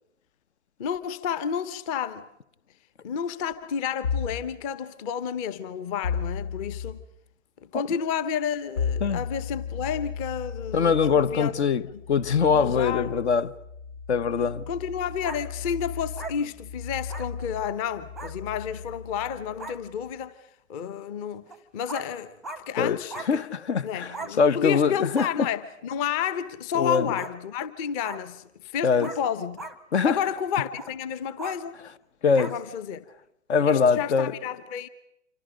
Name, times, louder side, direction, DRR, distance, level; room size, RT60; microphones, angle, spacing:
voice 1, 0.8-2.2 3.0-7.0 7.7-11.5 11.9-12.0 12.5-13.2 14.3-20.3 20.7-21.4 21.7-23.4 23.8-29.7 30.0-31.8 32.4-33.0 33.6-34.9, left 8 dB, 25° left, 1.0 m, -31 dB
sound 1, 4.0-4.5 6.0-7.0 8.8-20.1, left 6 dB, 75° left, 5.0 m, -35 dB
voice 2, 10.7-11.8 12.1-13.5 14.1-14.6 22.8-23.0 23.3-25.5 26.8-27.1 28.8-29.1 29.9-30.2 32.2-32.5 33.5-34.3, left 6 dB, 60° left, 1.2 m, -22 dB
sound 2, 15.2-15.4 16.2-16.3 17.1-17.3 18.2-18.3 19.2-19.3 19.6-19.8 21.5-21.6 21.9-22.1 22.4-22.6 23.1-23.3 24.1-24.3 25.1-25.3 27.2-27.3 28.0-28.2 29.0-29.2 29.6-29.8 30.7-30.9 31.4-31.6 32.4-32.6 33.9-34.0, right 3 dB, ahead, 0.8 m, -38 dB
27.0 x 25.5 x 5.2 m
hypercardioid pair, 140°, 38 cm